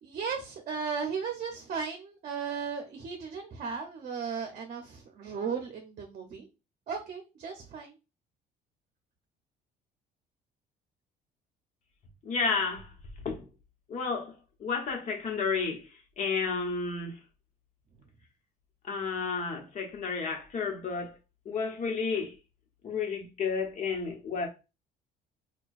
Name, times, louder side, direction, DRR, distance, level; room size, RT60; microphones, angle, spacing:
voice 1, 0.0-6.5 6.9-7.9, right 6 dB, 50° right, 0.7 m, -36 dB
voice 2, 12.2-12.9 13.2-13.4 13.9-14.3 14.6-15.8 16.2-17.2 18.9-21.1 21.5-22.3 22.8-24.5, left 5 dB, 45° left, 1.1 m, -31 dB
4.3 x 2.3 x 2.5 m
cardioid pair, 110°, 17 cm